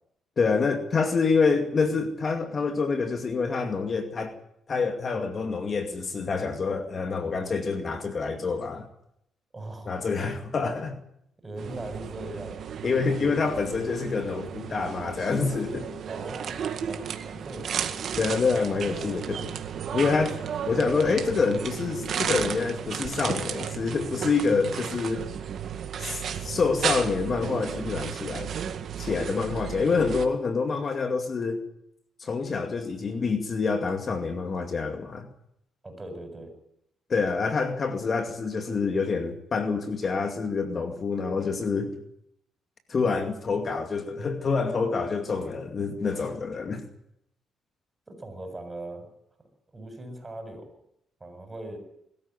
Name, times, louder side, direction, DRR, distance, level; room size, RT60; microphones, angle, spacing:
voice 1, 0.4-4.3 4.7-8.9 9.9-11.0 12.8-15.9 18.2-19.4 19.9-20.4 20.7-25.3 26.0-28.5 29.0-31.6 32.2-35.3 37.1-41.9 42.9-46.9, left 4 dB, 40° left, 6 dB, 2.3 m, -27 dB
voice 2, 9.5-10.0 11.4-12.6 16.1-18.0 18.5-19.1 35.8-36.5 48.1-49.1 49.7-50.7 51.2-51.8, right 1 dB, 20° right, 6 dB, 7.6 m, -40 dB
sound 1, 11.6-30.3, right 8 dB, 60° right, 2.0 m, -34 dB
21.5 x 14.0 x 9.8 m, 0.77 s
cardioid pair, 90°, 0 cm